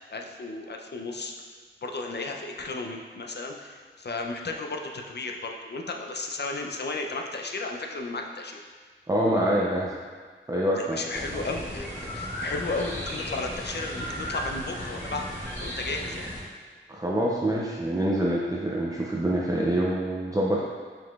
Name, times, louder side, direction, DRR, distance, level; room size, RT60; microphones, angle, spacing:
voice 1, 0.0-1.3 1.8-8.6 10.7-15.3 15.6-16.3, left 3 dB, 55° left, 2 dB, 0.4 m, -34 dB
voice 2, 9.1-10.0 10.5-11.0 11.3-11.4 16.9-20.6, right 1 dB, 15° right, -5 dB, 0.4 m, -26 dB
sound 1, 11.1-16.4, equal, 10° left, 1.2 m, -35 dB
5.0 x 3.8 x 2.3 m, 1.5 s
wide cardioid pair, 70°, 21 cm